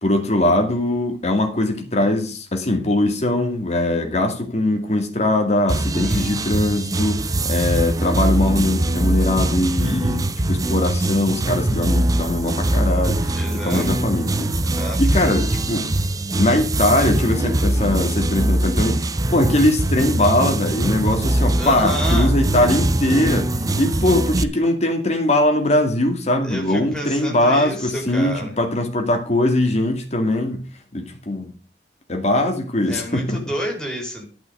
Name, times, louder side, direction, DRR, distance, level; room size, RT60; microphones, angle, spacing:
voice 1, 0.0-14.5 15.0-15.9 16.4-30.6 30.9-31.5 32.1-33.4, left 1 dB, 40° left, 2.2 m, -21 dB
sound 1, 5.7-24.4, right 1 dB, 20° right, 0.6 m, -22 dB
voice 2, 6.0-6.3 13.3-14.0 14.6-15.0 21.6-22.3 26.4-28.5 32.9-34.2, equal, 5° left, 3.9 m, -29 dB
12.0 x 6.0 x 6.7 m
head